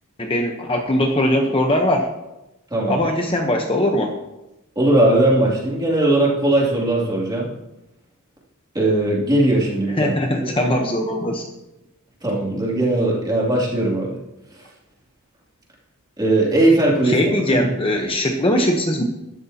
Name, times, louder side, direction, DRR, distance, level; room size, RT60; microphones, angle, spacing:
voice 1, 0.2-2.1 2.9-4.1 10.0-11.4 17.0-19.0, left 1 dB, 25° left, 2 dB, 0.9 m, -20 dB
voice 2, 2.7-3.1 4.8-7.5 8.7-10.5 12.2-14.2 16.2-17.3, right 1 dB, 20° right, -4 dB, 2.8 m, -19 dB
13.0 x 12.0 x 2.9 m, 0.95 s
head